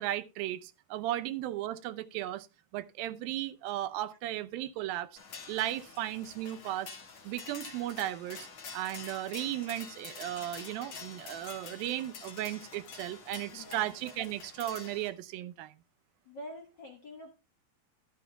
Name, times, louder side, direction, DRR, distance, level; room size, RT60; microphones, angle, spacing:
voice 1, 0.0-2.5 2.7-5.2 5.5-7.0 7.2-8.5 8.7-15.7, right 13 dB, 90° right, 2.5 m, -35 dB
sound 1, 5.2-15.1, left 5 dB, 40° left, 2.3 m, -47 dB
voice 2, 13.5-13.9 16.2-17.3, left 1 dB, 60° left, 1.2 m, -46 dB
14.0 x 12.5 x 2.2 m
omnidirectional pair, 4.1 m